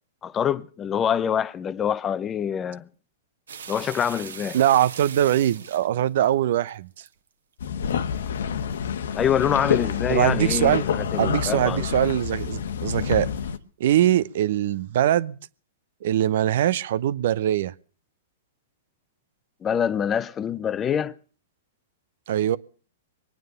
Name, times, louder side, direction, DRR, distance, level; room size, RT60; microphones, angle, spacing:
voice 1, 0.2-2.9 3.7-4.6 9.1-11.8 19.6-21.2, left 8 dB, 25° left, 0.7 m, -25 dB
sound 1, 3.5-7.1 7.7-8.0 8.4-8.5 9.0-9.5 10.1-10.2 10.7-10.8 10.9-11.2 11.8-12.0 12.7-12.8, right 7 dB, 85° right, 1.7 m, -40 dB
voice 2, 4.5-6.9 10.1-10.8 11.2-13.3 13.8-15.4 16.0-17.7 22.3-22.6, right 11 dB, 65° right, 0.8 m, -22 dB
sound 2, 7.6-13.6, left 7 dB, 80° left, 1.2 m, -28 dB
22.0 x 9.4 x 6.6 m
hypercardioid pair, 125°, 0 cm